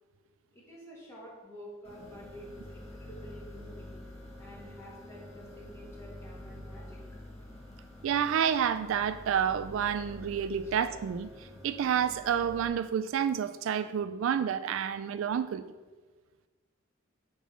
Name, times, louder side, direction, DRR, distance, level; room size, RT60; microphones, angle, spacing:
voice 1, 0.5-3.9 4.4-7.0 10.6-10.8, equal, 15° left, -5 dB, 1.9 m, -49 dB
sound 1, 1.8-12.7, left 1 dB, 30° left, 1.8 m, -47 dB
voice 2, 8.0-11.3 11.6-15.6, right 8 dB, 70° right, 12 dB, 0.3 m, -29 dB
7.0 x 3.8 x 6.1 m, 1.3 s
head